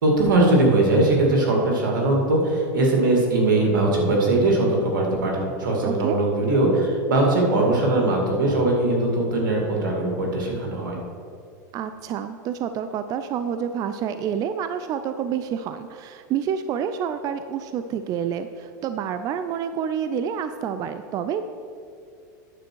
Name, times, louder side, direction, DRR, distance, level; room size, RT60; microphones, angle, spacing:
voice 1, 0.0-11.0, right 2 dB, 85° right, 0 dB, 2.3 m, -20 dB
voice 2, 5.8-6.2 11.7-21.5, right 8 dB, 35° right, 10 dB, 0.4 m, -28 dB
9.7 x 7.2 x 4.6 m, 2.4 s
hypercardioid pair, 115°, 10 cm